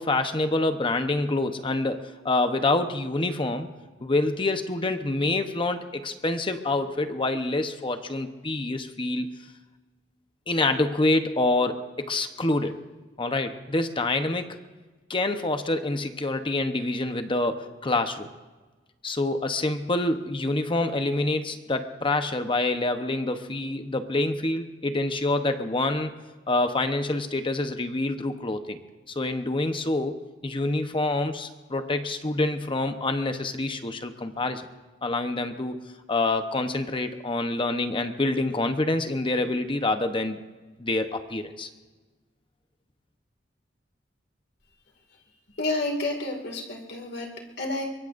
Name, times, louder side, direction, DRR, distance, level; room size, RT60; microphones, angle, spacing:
voice 1, 0.0-3.7 4.0-9.3 10.5-12.8 13.2-14.6 15.1-18.3 19.0-26.1 26.5-28.8 29.1-34.7 35.0-35.8 36.1-40.4 40.8-41.7, left 2 dB, 30° left, 7 dB, 0.9 m, -26 dB
voice 2, 45.6-47.9, left 2 dB, 60° left, 1 dB, 2.3 m, -30 dB
23.5 x 22.5 x 2.6 m, 1.3 s
head